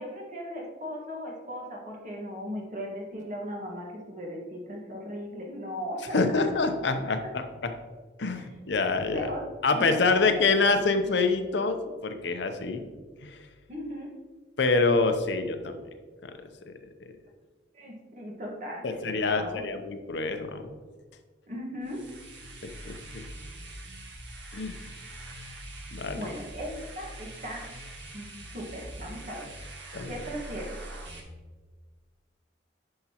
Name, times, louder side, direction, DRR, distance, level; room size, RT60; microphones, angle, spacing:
voice 1, 0.0-6.2 7.2-7.3 8.3-8.5 9.1-9.4 9.7-10.9 13.7-14.1 17.7-19.6 21.5-22.0 26.1-29.5 30.1-30.8, equal, 45° right, -1 dB, 1.5 m, -38 dB
voice 2, 6.1-7.7 8.2-9.3 9.6-12.8 13.2-13.5 14.6-15.8 16.2-16.3 18.8-20.7 22.6-23.0 24.5-24.8 25.9-26.3 29.9-30.1, left 3 dB, 75° left, 7 dB, 0.7 m, -26 dB
sound 1, 21.8-31.2, right 1 dB, 85° right, 1.5 m, -43 dB
10.0 x 5.7 x 2.9 m, 1.4 s
head